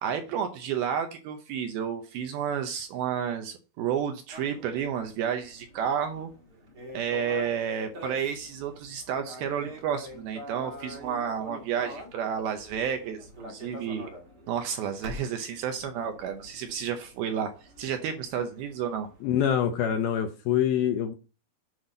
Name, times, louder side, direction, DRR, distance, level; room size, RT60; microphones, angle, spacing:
voice 1, 0.0-6.3 6.9-14.1 14.5-17.5 17.8-19.1, right 8 dB, 75° right, 2.3 m, -31 dB
sound 1, 4.3-20.2, equal, 40° right, 1.5 m, -46 dB
voice 2, 19.2-21.1, left 9 dB, 75° left, 2.3 m, -25 dB
8.1 x 5.7 x 3.9 m
omnidirectional pair, 5.0 m